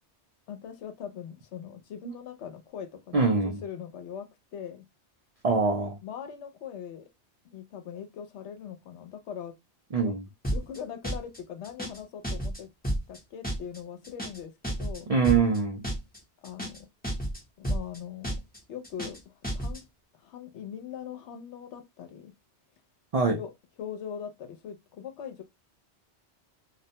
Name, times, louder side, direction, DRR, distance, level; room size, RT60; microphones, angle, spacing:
voice 1, 0.5-4.8 6.0-7.1 7.4-9.6 10.0-10.1 10.5-12.7 13.1-15.1 16.4-16.9 17.6-18.4 18.7-19.8 20.1-22.3 23.4-23.5 23.8-25.4, left 8 dB, 85° left, 0.9 m, -41 dB
voice 2, 3.1-3.6 5.4-6.0 9.9-10.2 15.1-15.8 23.1-23.4, right 4 dB, 65° right, 0.3 m, -24 dB
sound 1, 10.4-10.8 11.0-11.4 11.6-12.0 12.2-12.6 12.8-13.2 13.4-13.8 14.0-14.4 14.6-15.0 15.2-15.6 15.8-16.2 16.4-16.8 17.0-17.4 17.6-18.0 18.2-18.6 18.8-19.2 19.4-19.8, right 1 dB, 10° left, 0.7 m, -31 dB
2.3 x 2.1 x 2.7 m
omnidirectional pair, 1.2 m